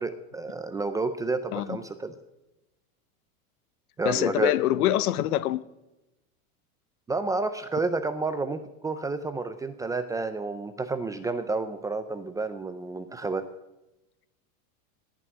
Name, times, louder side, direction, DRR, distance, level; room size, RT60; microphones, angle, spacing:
voice 1, 0.0-2.2 4.0-4.5 7.1-13.5, right 3 dB, 10° right, 10 dB, 0.4 m, -30 dB
voice 2, 4.0-5.6, left 13 dB, 85° left, 16 dB, 1.0 m, -25 dB
18.0 x 6.0 x 9.6 m, 1.0 s
supercardioid pair, 140°, 43 cm